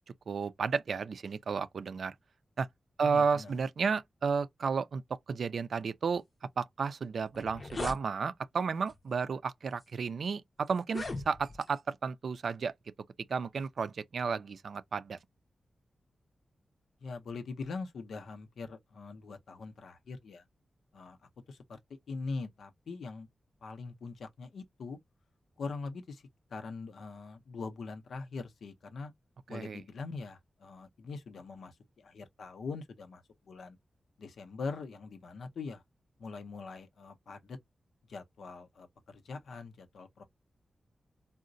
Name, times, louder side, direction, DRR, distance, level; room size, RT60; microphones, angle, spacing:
voice 1, 0.3-2.1 2.6-2.7 3.0-5.0 5.3-6.2 6.6-12.7 13.3-15.2 29.5-29.8, right 5 dB, 70° right, 0.3 m, -32 dB
voice 2, 3.0-3.6 17.0-20.4 20.9-21.2 21.5-23.3 23.6-25.0 25.6-26.2 26.5-29.1 29.5-33.8 34.2-35.8 36.2-37.6 38.1-40.2, left 4 dB, 85° left, 0.6 m, -42 dB
sound 1, 6.9-7.0 7.3-8.0 8.9-9.1 9.8-9.9 10.8-11.7, left 3 dB, 40° left, 0.6 m, -39 dB
3.8 x 2.1 x 2.5 m
wide cardioid pair, 90°, 0 cm